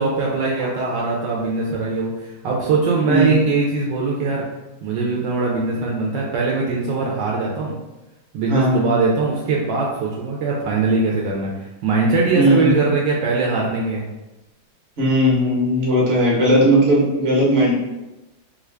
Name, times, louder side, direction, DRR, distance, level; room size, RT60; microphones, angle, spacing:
voice 1, 0.0-4.4 4.8-7.7 8.3-14.1, right 3 dB, 75° right, -3 dB, 1.2 m, -21 dB
voice 2, 8.5-8.8 12.3-12.7 15.0-17.7, equal, 40° right, -4 dB, 1.0 m, -17 dB
3.1 x 2.5 x 3.2 m, 1.0 s
omnidirectional pair, 2.1 m